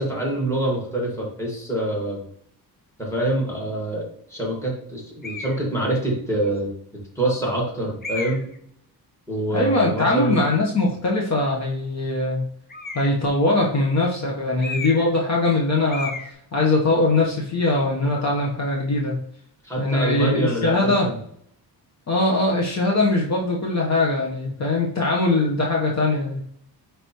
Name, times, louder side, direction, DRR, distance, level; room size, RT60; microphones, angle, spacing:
voice 1, 0.0-2.2 3.0-6.7 7.2-8.4 9.3-10.4 19.6-21.2, right 1 dB, 5° left, -2 dB, 1.8 m, -25 dB
sound 1, 5.2-5.6 6.4-6.5 8.0-8.6 12.7-13.3 14.6-15.2 15.5-15.6 15.9-16.3, left 3 dB, 25° left, 0.8 m, -33 dB
voice 2, 9.5-12.5 12.9-16.1 16.5-19.2 19.8-21.1 22.1-26.4, left 2 dB, 40° left, -2 dB, 1.0 m, -21 dB
9.6 x 3.4 x 3.0 m, 0.66 s
wide cardioid pair, 150°, 41 cm